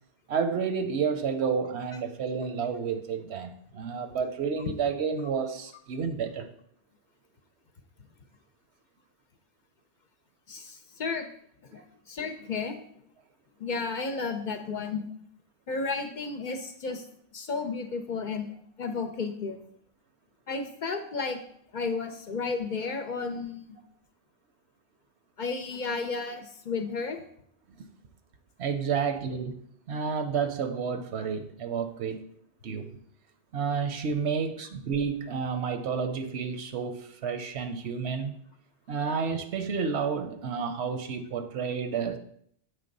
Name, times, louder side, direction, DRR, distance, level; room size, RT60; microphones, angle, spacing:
voice 1, 0.3-6.5 28.6-29.6 29.9-32.2 32.6-32.9 33.5-38.4 38.9-42.2, right 6 dB, 80° right, 8 dB, 1.0 m, -30 dB
voice 2, 10.5-11.3 11.6-12.8 13.6-15.1 15.7-17.0 17.3-18.5 18.8-19.6 20.5-21.4 21.7-23.6 25.4-27.2, left 4 dB, 55° left, 6 dB, 0.7 m, -32 dB
7.6 x 3.3 x 5.3 m, 0.66 s
omnidirectional pair, 1.1 m